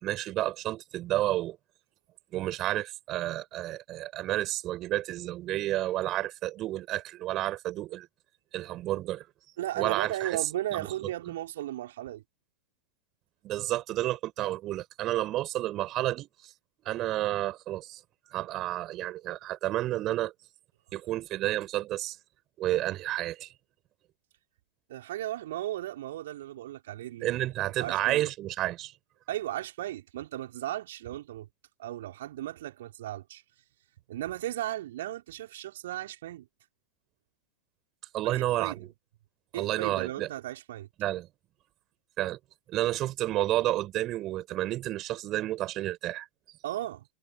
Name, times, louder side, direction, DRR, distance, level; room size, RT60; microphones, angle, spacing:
voice 1, 0.0-1.6 2.3-8.1 8.5-9.3 9.8-10.4 10.7-10.9 13.4-16.3 16.8-18.0 18.3-20.3 20.9-22.2 22.6-23.5 27.2-28.9 38.1-38.9 39.5-40.3 41.0-41.3 42.2-42.4 42.7-46.6, right 15 dB, 35° right, 5.0 m, -30 dB
voice 2, 9.6-12.2 24.9-27.4 27.8-28.3 29.3-31.5 31.8-33.4 34.1-36.5 38.2-38.9 39.5-40.9 46.6-47.1, right 14 dB, 55° right, 3.9 m, -36 dB
figure-of-eight pair, 90°, 0 cm